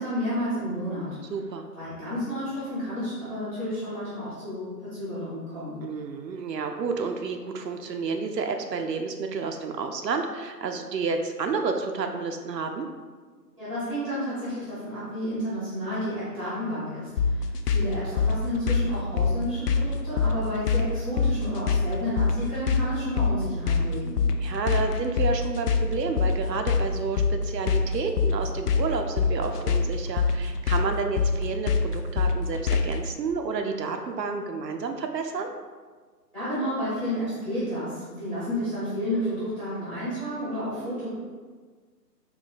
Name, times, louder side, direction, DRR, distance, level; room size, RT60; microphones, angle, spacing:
voice 1, 0.0-1.2 1.7-5.8 13.6-24.3 36.3-41.1, equal, ahead, -13 dB, 0.8 m, -31 dB
voice 2, 1.3-1.6 5.8-12.9 24.4-35.5, right 4 dB, 75° right, 5 dB, 0.6 m, -30 dB
sound 1, 17.2-33.1, left 5 dB, 70° left, 0.5 m, -24 dB
4.0 x 2.1 x 3.9 m, 1.5 s
figure-of-eight pair, 140°, 50 cm